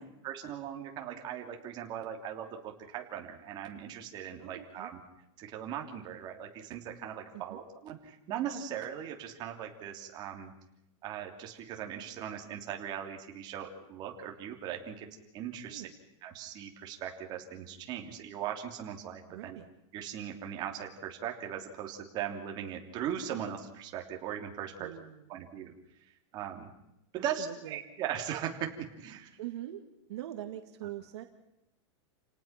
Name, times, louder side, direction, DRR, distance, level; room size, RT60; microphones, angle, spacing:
voice 1, 0.2-5.0 5.4-10.5 11.0-15.1 15.3-15.9 16.2-19.6 19.9-24.9 25.3-25.7 26.3-26.7 27.1-28.7 29.0-29.3, right 9 dB, 30° right, 2 dB, 3.2 m, -39 dB
voice 2, 4.4-4.9 7.3-7.6 15.7-15.9 19.3-19.7 24.8-25.3 27.1-27.9 29.4-29.8 30.1-31.2, right 13 dB, 65° right, 5 dB, 2.2 m, -43 dB
29.5 x 18.5 x 6.0 m, 0.86 s
supercardioid pair, 170°, 15 cm